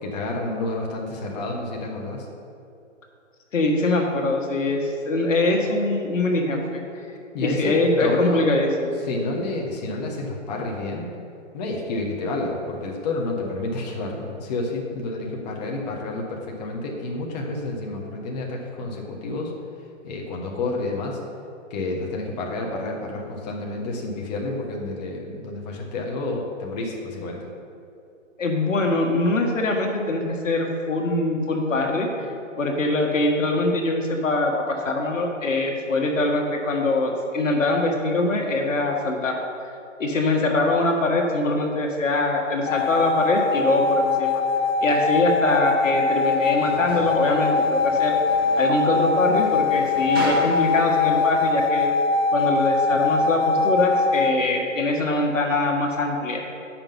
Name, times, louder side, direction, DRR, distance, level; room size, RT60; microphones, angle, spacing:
voice 1, 0.0-2.3 7.3-7.7 8.0-8.5 9.0-11.1 11.5-19.5 20.0-21.2 21.7-27.5, left 2 dB, 35° left, 0 dB, 1.1 m, -29 dB
voice 2, 3.5-6.8 7.4-9.0 28.4-32.1 32.6-39.3 40.0-44.4 44.8-48.2 48.5-51.9 52.3-56.4, left 2 dB, 80° left, 2 dB, 1.6 m, -23 dB
sound 1, 42.7-54.3, left 4 dB, 55° left, 0.5 m, -22 dB
sound 2, 46.3-51.7, right 2 dB, 20° right, 0.5 m, -36 dB
8.8 x 5.9 x 5.4 m, 2.6 s
hypercardioid pair, 145°, 38 cm